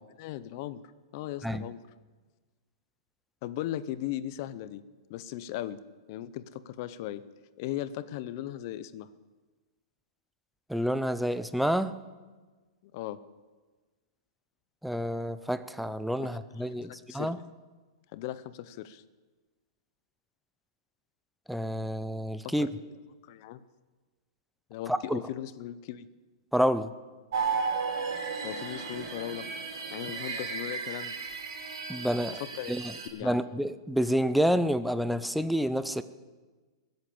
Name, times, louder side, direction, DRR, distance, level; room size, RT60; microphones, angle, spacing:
voice 1, 0.2-0.8 1.1-1.8 3.4-4.8 5.1-5.8 6.1-7.2 7.6-9.1 12.9-13.2 16.2-16.3 16.6-17.5 18.1-19.0 22.4-22.7 23.3-23.6 24.7-26.1 28.4-29.5 29.9-31.2 32.4-33.4, left 13 dB, 45° left, 15 dB, 0.7 m, -38 dB
voice 2, 10.7-12.0 14.8-17.4 21.5-22.7 24.9-25.2 26.5-26.9 31.9-32.4 32.7-32.8 33.2-36.0, equal, ahead, 12 dB, 0.5 m, -28 dB
sound 1, 27.3-33.1, right 5 dB, 75° right, 4.4 m, -34 dB
20.5 x 8.0 x 8.7 m, 1.3 s
hypercardioid pair, 155°, 3 cm